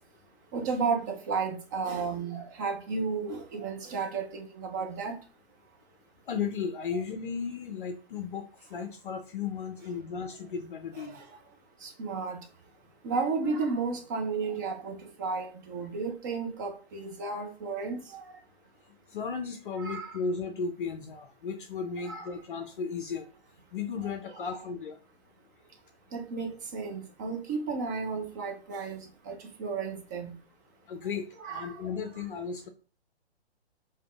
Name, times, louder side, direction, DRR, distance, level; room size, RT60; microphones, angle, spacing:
voice 1, 0.5-5.1 11.0-11.4 11.8-12.4 13.0-18.4 19.8-20.2 22.0-22.3 24.3-24.5 26.1-30.3 31.4-31.9, right 4 dB, 20° right, 3 dB, 0.4 m, -33 dB
voice 2, 6.3-11.2 19.1-23.3 23.7-25.0 30.9-32.7, left 5 dB, 50° left, 5 dB, 0.6 m, -35 dB
5.1 x 2.8 x 2.3 m, 0.37 s
figure-of-eight pair, 135°, 33 cm